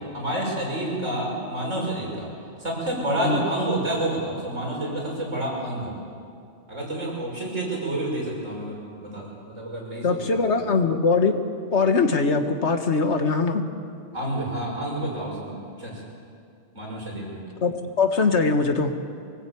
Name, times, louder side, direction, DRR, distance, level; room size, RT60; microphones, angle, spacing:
voice 1, 0.1-2.3 2.6-5.9 6.7-10.6 14.1-16.0 16.7-17.4, right 1 dB, 90° right, -3 dB, 6.6 m, -29 dB
voice 2, 10.0-11.4 11.7-13.7 17.6-18.9, left 4 dB, 65° left, 6 dB, 1.8 m, -21 dB
24.0 x 20.0 x 8.6 m, 2.4 s
omnidirectional pair, 1.2 m